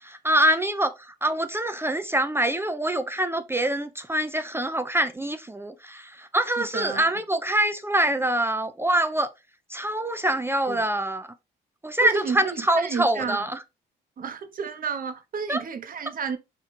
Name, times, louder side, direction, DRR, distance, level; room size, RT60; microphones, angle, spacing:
voice 1, 0.0-9.3 9.7-11.3 11.8-13.6 15.5-15.6, right 1 dB, 10° right, 0.4 m, -25 dB
voice 2, 6.6-7.1 10.7-10.8 12.0-13.4 14.2-16.4, right 6 dB, 45° right, 0.8 m, -31 dB
4.4 x 2.3 x 4.2 m
cardioid pair, 90°, 20 cm